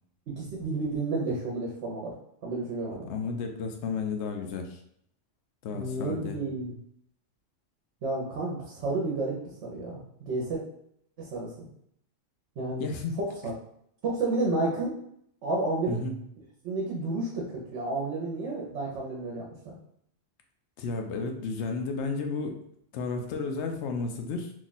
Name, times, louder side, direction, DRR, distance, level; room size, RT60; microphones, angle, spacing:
voice 1, 0.3-2.1 2.4-3.1 5.7-6.7 8.0-9.3 9.6-10.6 11.2-11.7 12.6-12.9 13.2-13.5 14.0-14.9 15.4-16.0 16.6-19.7, right 2 dB, 65° right, -2 dB, 1.0 m, -31 dB
voice 2, 3.1-4.8 5.6-6.4 12.8-13.1 15.9-16.1 20.8-22.6 22.9-24.5, left 4 dB, 70° left, 4 dB, 0.8 m, -32 dB
2.9 x 2.3 x 4.0 m, 0.70 s
omnidirectional pair, 1.3 m